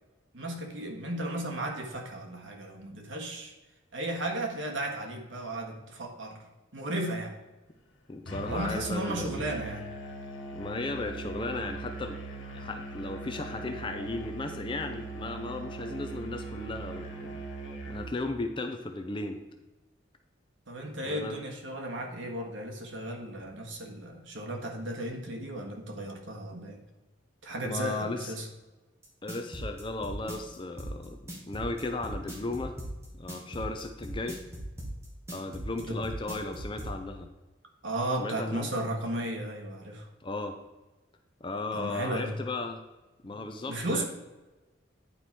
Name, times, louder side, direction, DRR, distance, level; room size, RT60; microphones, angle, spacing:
voice 1, 0.3-3.5 3.9-6.4 6.7-7.3 8.5-9.8 20.7-26.8 27.4-28.5 35.8-36.0 37.8-40.1 41.7-42.3 43.2-43.4 43.7-44.1, right 1 dB, 75° right, 2 dB, 1.5 m, -35 dB
voice 2, 8.1-9.4 10.5-12.2 12.5-17.4 17.9-19.4 21.0-21.4 27.6-28.4 29.2-32.8 33.2-34.4 35.3-37.3 38.2-38.7 40.2-40.6 41.4-42.8 43.2-44.0, left 2 dB, 25° left, 6 dB, 0.5 m, -35 dB
Musical instrument, 8.3-18.2, right 3 dB, 75° left, 1.6 m, -40 dB
sound 1, 29.0-36.9, right 1 dB, 15° right, 1.6 m, -38 dB
9.7 x 4.7 x 4.2 m, 1.1 s
head